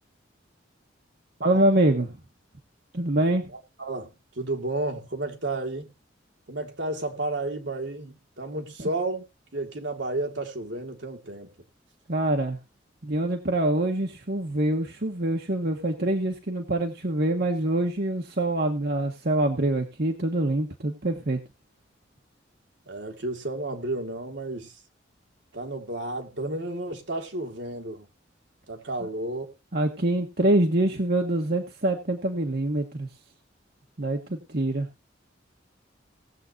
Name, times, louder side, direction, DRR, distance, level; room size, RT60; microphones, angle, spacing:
voice 1, 1.4-2.1 2.9-3.5 8.8-8.9 12.1-12.6 13.0-21.4 29.7-33.1 34.0-34.9, right 1 dB, 55° right, 1.3 m, -25 dB
voice 2, 3.5-5.9 6.5-9.2 9.5-11.5 22.9-24.7 25.5-28.1 28.7-29.5, right 2 dB, 70° right, 2.0 m, -32 dB
18.5 x 7.7 x 2.7 m
head